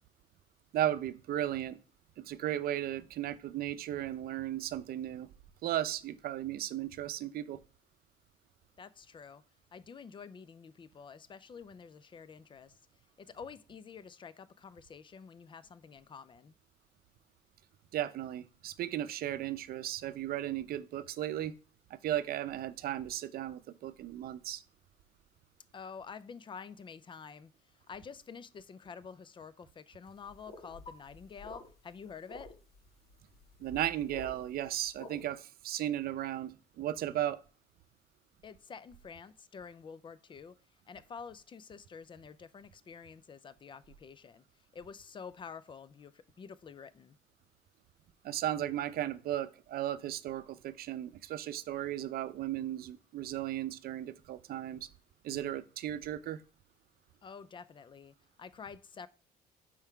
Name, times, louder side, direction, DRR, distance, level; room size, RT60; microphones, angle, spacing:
voice 1, 0.7-1.8 2.2-5.3 5.6-7.6 17.9-21.5 21.9-24.6 33.6-37.4 48.2-54.9 55.2-56.4, right 12 dB, 65° right, 0.6 m, -35 dB
voice 2, 8.8-9.4 9.7-12.8 13.2-16.5 25.7-27.5 27.9-32.5 38.4-40.5 40.9-44.4 44.7-47.2 57.2-59.1, left 6 dB, 30° left, 0.4 m, -49 dB
sound 1, 30.1-35.2, left 2 dB, 65° left, 2.0 m, -51 dB
5.6 x 4.6 x 4.5 m
cardioid pair, 110°, 17 cm